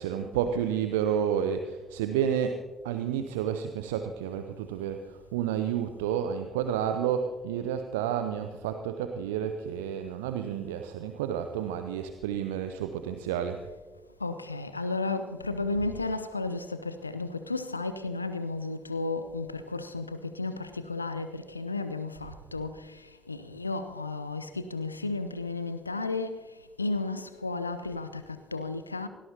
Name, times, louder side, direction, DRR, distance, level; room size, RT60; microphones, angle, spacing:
voice 1, 0.0-13.6, right 9 dB, 70° right, 0.6 m, -30 dB
voice 2, 14.2-23.0 23.3-26.4 26.8-29.1, left 3 dB, 85° left, 0.5 m, -33 dB
24.0 x 17.0 x 2.8 m
figure-of-eight pair, 45°, 0 cm